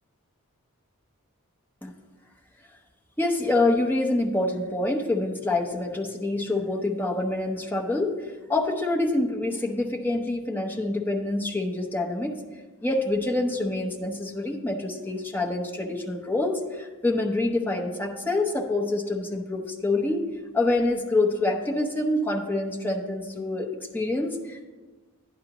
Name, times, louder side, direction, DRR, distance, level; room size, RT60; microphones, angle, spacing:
voice 1, 3.2-12.4 12.8-20.3 20.5-23.7 23.9-24.6, left 2 dB, 10° left, 1 dB, 0.8 m, -26 dB
11.0 x 10.0 x 3.0 m, 1.3 s
head